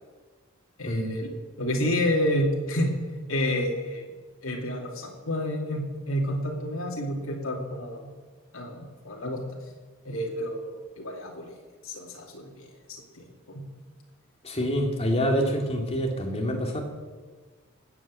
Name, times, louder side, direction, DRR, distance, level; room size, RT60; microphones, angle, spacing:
voice 1, 0.8-1.3 1.6-2.9 3.3-4.0 4.4-8.0 8.5-9.4 10.0-11.6 11.8-13.6, left 1 dB, 70° left, -1 dB, 2.7 m, -29 dB
voice 2, 14.4-16.8, equal, 30° left, 1 dB, 2.6 m, -26 dB
19.5 x 8.6 x 7.7 m, 1.4 s
head